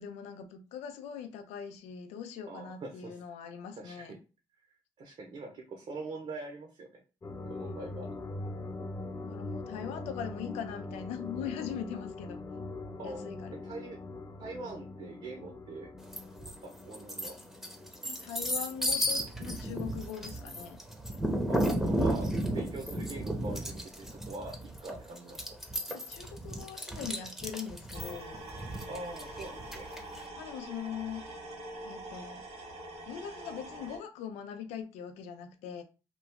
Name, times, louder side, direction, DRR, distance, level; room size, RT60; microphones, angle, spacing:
voice 1, 0.0-4.2 9.2-12.8 13.0-13.5 18.1-20.8 25.9-28.4 30.4-31.2 31.8-32.4 33.1-35.8, left 8 dB, 90° left, 0.5 m, -41 dB
voice 2, 2.4-3.2 3.8-4.2 5.0-7.0 7.5-8.1 13.0-13.3 13.6-14.0 14.4-15.9 16.8-17.3 21.5-25.6 28.9-29.9, right 3 dB, 55° right, 0.8 m, -43 dB
sound 1, 7.2-20.7, left 2 dB, 30° left, 0.9 m, -43 dB
sound 2, 16.1-16.5 16.9-30.2, equal, ahead, 0.8 m, -33 dB
sound 3, 27.9-34.0, right 1 dB, 75° right, 1.4 m, -44 dB
3.0 x 2.3 x 3.4 m
supercardioid pair, 65°, 11 cm